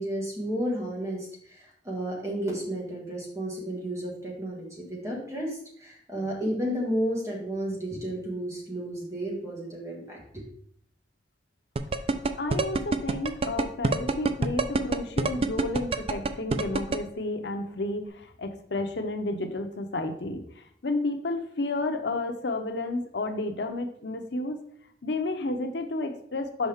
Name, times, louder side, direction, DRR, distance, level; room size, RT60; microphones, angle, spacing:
voice 1, 0.0-10.4, right 1 dB, 15° right, -2 dB, 1.7 m, -32 dB
sound 1, 11.8-17.0, right 3 dB, 35° right, 0.4 m, -25 dB
voice 2, 12.4-24.6 25.0-26.7, left 2 dB, 80° left, 6 dB, 0.7 m, -31 dB
6.0 x 5.3 x 3.5 m, 0.66 s
head